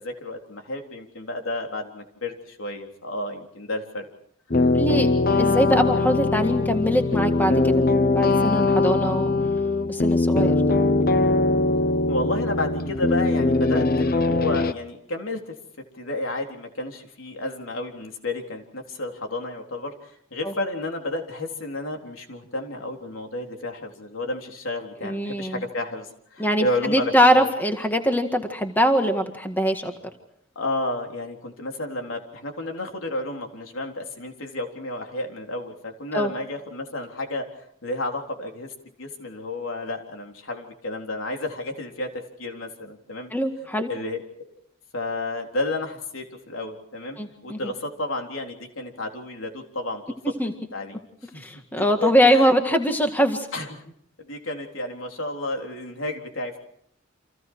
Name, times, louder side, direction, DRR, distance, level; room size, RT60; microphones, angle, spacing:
voice 1, 0.0-4.1 12.1-15.5 15.9-27.5 30.6-37.4 37.8-38.7 39.0-43.3 43.9-44.2 44.9-50.2 50.7-51.0 51.3-52.5 53.5-53.9 54.2-56.6, left 2 dB, 75° left, 2 dB, 3.8 m, -31 dB
sound 1, 4.5-14.7, left 2 dB, 45° left, 0.9 m, -21 dB
voice 2, 4.7-7.9 8.2-9.3 9.9-10.6 20.4-20.5 25.0-25.6 26.4-29.9 36.1-36.3 43.3-43.9 47.2-47.7 50.4-50.5 51.4-53.5, equal, 10° left, 5 dB, 1.8 m, -22 dB
30.0 x 27.0 x 4.7 m, 0.67 s
head